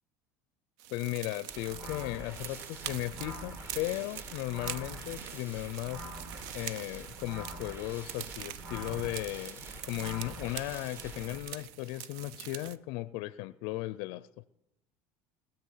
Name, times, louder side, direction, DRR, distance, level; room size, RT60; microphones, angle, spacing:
sound 1, 0.8-12.8, right 12 dB, 70° right, 0.5 m, -44 dB
voice 1, 0.9-6.1 6.5-14.3, left 18 dB, 70° left, 0.4 m, -36 dB
sound 2, 1.5-11.4, right 1 dB, 30° right, 1.7 m, -45 dB
21.0 x 7.1 x 5.6 m
cardioid pair, 140°, 7 cm